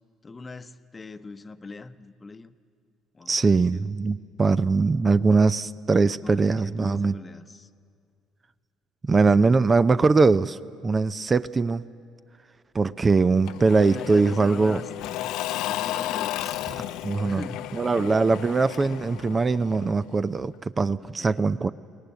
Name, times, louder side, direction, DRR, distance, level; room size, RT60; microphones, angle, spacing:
voice 1, 0.2-2.5 3.1-3.9 6.2-7.7 13.8-16.6 17.3-17.8 21.0-21.5, left 3 dB, 25° left, 12 dB, 0.9 m, -42 dB
voice 2, 3.3-7.1 9.0-10.6 10.8-11.8 12.7-14.8 17.0-17.5 17.7-21.7, right 4 dB, 30° right, 14 dB, 0.5 m, -21 dB
Engine / Mechanisms / Drill, 13.5-20.1, left 13 dB, 65° left, 0.6 m, -33 dB
22.5 x 18.5 x 9.4 m, 2.2 s
hypercardioid pair, 55°, 0 cm